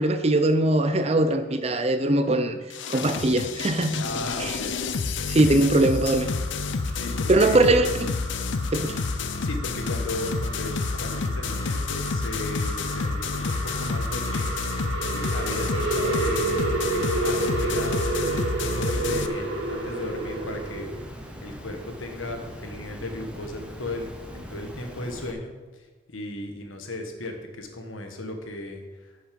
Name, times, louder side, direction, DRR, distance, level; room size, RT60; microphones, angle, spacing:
voice 1, 0.0-2.6 2.9-4.1 4.4-4.6 5.3-6.3 7.3-8.1 8.7-9.0, right 2 dB, 30° right, 9 dB, 0.6 m, -21 dB
sound 1, 2.7-19.3, left 4 dB, 70° left, 0.6 m, -29 dB
voice 2, 4.0-5.6 6.9-7.7 9.4-20.9 21.4-29.3, left 1 dB, 85° left, 4 dB, 1.5 m, -36 dB
sound 2, 5.8-21.0, right 2 dB, 85° right, 1.9 m, -31 dB
Water, 15.3-25.3, equal, 5° right, 0.9 m, -41 dB
9.7 x 6.4 x 5.3 m, 1.2 s
head